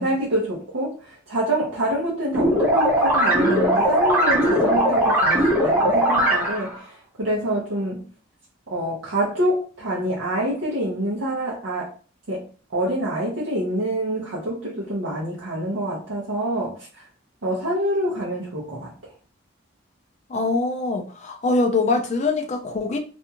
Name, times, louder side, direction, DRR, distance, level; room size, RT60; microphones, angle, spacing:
voice 1, 0.0-8.0 8.7-11.9 12.3-12.4 12.7-17.0 17.4-18.9, right 1 dB, 75° right, 0.8 m, -26 dB
sound 1, 2.3-6.7, right 1 dB, 10° right, 0.7 m, -19 dB
voice 2, 20.3-23.0, left 3 dB, 35° left, 0.4 m, -23 dB
2.6 x 2.3 x 2.8 m
head